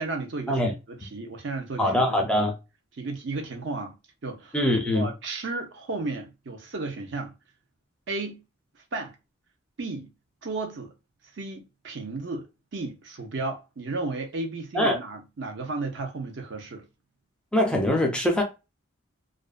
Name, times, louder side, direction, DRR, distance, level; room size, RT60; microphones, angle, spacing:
voice 1, 0.0-2.4 3.0-3.9 4.2-4.6 4.9-7.3 8.1-8.4 8.9-9.1 9.8-10.1 10.4-10.9 11.3-16.8, right 3 dB, 60° right, 0.6 m, -34 dB
voice 2, 1.8-2.6 4.5-5.1 14.7-15.0 17.5-18.4, left 1 dB, 5° left, 0.4 m, -23 dB
2.4 x 2.2 x 2.3 m
head